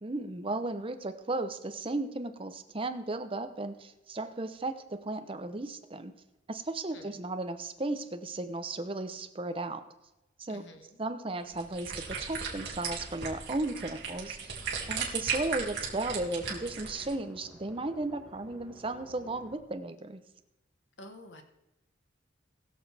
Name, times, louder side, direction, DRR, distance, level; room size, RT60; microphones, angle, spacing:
voice 1, 0.0-6.1 6.5-9.8 10.4-10.6 11.0-14.5 14.9-20.2, right 2 dB, 30° right, 9 dB, 0.8 m, -35 dB
voice 2, 10.5-10.9 21.0-21.4, left 1 dB, 65° left, 6 dB, 1.3 m, -49 dB
sound 1, 11.4-17.1, right 5 dB, 60° right, 2.5 m, -36 dB
sound 2, 13.2-19.6, left 1 dB, 5° right, 1.7 m, -56 dB
21.0 x 7.0 x 3.4 m, 0.96 s
head